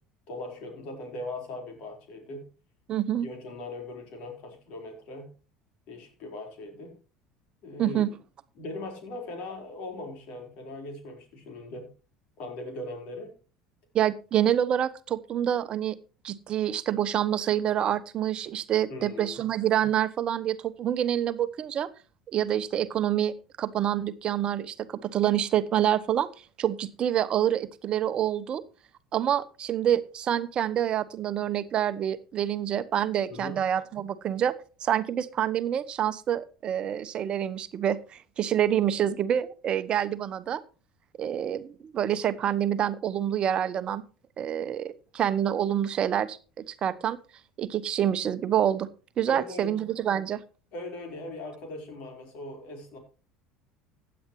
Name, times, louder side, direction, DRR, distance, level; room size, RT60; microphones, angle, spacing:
voice 1, 0.3-2.5 3.2-5.3 5.9-6.9 7.6-8.1 8.6-11.9 12.4-13.4 18.9-19.4 33.3-33.6 49.3-49.7 50.7-53.0, left 2 dB, 55° left, 4 dB, 4.5 m, -39 dB
voice 2, 2.9-3.3 7.8-8.1 13.9-16.0 16.2-21.9 22.3-26.3 26.6-28.6 29.1-34.5 34.8-40.6 41.2-44.0 44.4-47.2 47.6-48.9 49.2-50.4, right 10 dB, 40° right, 13 dB, 0.9 m, -27 dB
15.5 x 9.6 x 3.1 m, 0.35 s
figure-of-eight pair, 65°, 2 cm